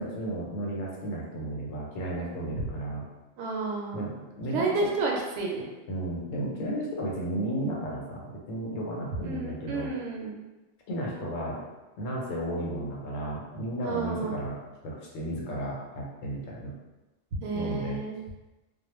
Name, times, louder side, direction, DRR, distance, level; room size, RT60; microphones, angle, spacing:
voice 1, 0.0-3.1 3.9-4.1 4.4-4.7 5.9-9.9 10.9-11.6 12.0-14.6 14.8-16.7 17.5-18.0, right 1 dB, 85° left, -3 dB, 1.1 m, -33 dB
voice 2, 3.4-4.1 4.5-5.6 9.2-10.4 13.8-14.4 17.4-18.2, right 3 dB, 70° right, -2 dB, 0.9 m, -31 dB
2.3 x 2.1 x 3.0 m, 1.1 s
omnidirectional pair, 1.3 m